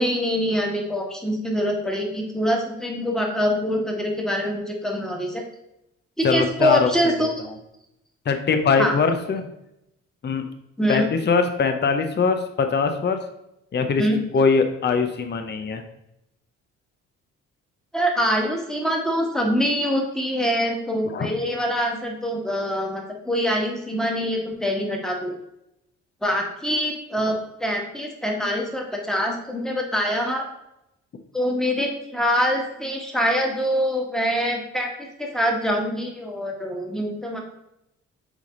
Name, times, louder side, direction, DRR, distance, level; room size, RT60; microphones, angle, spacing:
voice 1, 0.0-5.4 6.2-7.5 8.8-9.0 10.8-11.1 14.0-14.2 17.9-25.3 26.2-30.5 31.3-37.4, equal, ahead, 0 dB, 1.5 m, -24 dB
voice 2, 6.2-6.9 7.2-7.3 8.3-9.4 10.2-10.5 10.9-13.2 13.7-14.0 14.3-15.8 21.1-21.3, left 5 dB, 35° left, 7 dB, 0.7 m, -22 dB
8.2 x 3.4 x 3.8 m, 0.85 s
cardioid pair, 90°, 30 cm